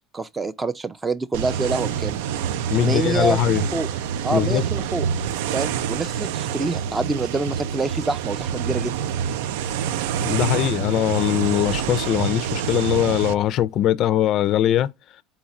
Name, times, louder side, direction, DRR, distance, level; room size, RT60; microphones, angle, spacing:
voice 1, 0.1-2.2 2.8-3.9 4.2-5.1 5.5-9.0, right 3 dB, 20° right, 0.5 m, -26 dB
sound 1, 1.3-13.3, right 8 dB, 80° right, 0.3 m, -27 dB
voice 2, 2.7-3.6 4.3-4.6 10.2-14.9, left 12 dB, 55° left, 0.4 m, -21 dB
4.1 x 2.4 x 4.1 m
supercardioid pair, 105°, 0 cm